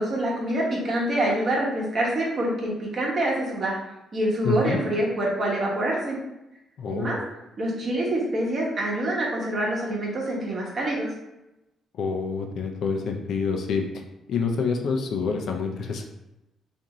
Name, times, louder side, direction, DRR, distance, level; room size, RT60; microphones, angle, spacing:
voice 1, 0.0-3.8 4.1-6.2 6.9-7.2 7.6-11.1, right 1 dB, 45° right, -3 dB, 0.9 m, -26 dB
voice 2, 4.4-4.8 6.8-7.1 12.0-13.8 14.3-16.0, left 5 dB, 70° left, 3 dB, 0.4 m, -27 dB
2.6 x 2.4 x 2.9 m, 0.93 s
cardioid pair, 90°, 0 cm